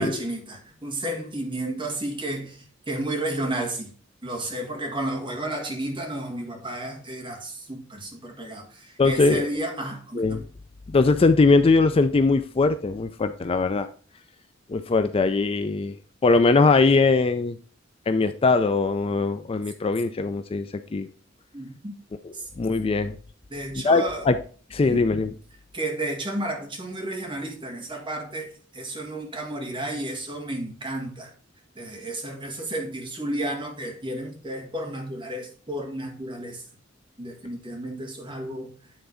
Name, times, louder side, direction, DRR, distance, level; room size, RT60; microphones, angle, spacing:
voice 1, 0.0-3.9 4.2-10.5 21.5-21.9 22.3-22.5 23.5-24.3 24.8-25.1 25.7-31.3 31.8-36.6 37.2-38.9, right 1 dB, 25° right, 1.9 m, -32 dB
voice 2, 9.0-9.5 10.2-10.4 10.9-13.9 14.7-15.9 16.2-17.6 18.1-21.1 22.6-23.2 23.8-24.4 24.7-25.3, left 3 dB, 30° left, 0.4 m, -21 dB
9.1 x 3.8 x 4.9 m
head